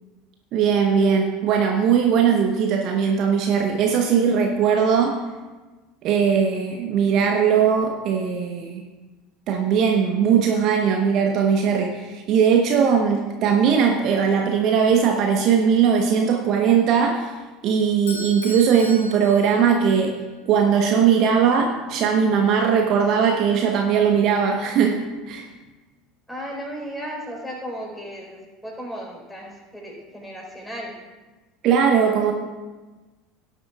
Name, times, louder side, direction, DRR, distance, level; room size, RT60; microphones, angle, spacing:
voice 1, 0.5-5.2 6.0-8.8 9.5-17.3 17.6-25.0 25.3-25.5 31.6-32.3, right 7 dB, 45° right, 3 dB, 1.1 m, -19 dB
Bell / Doorbell, 18.1-20.2, right 1 dB, 70° left, 2.6 m, -37 dB
voice 2, 26.3-31.0, equal, ahead, -2 dB, 4.3 m, -35 dB
17.5 x 11.0 x 2.4 m, 1.2 s
figure-of-eight pair, 70°, 0 cm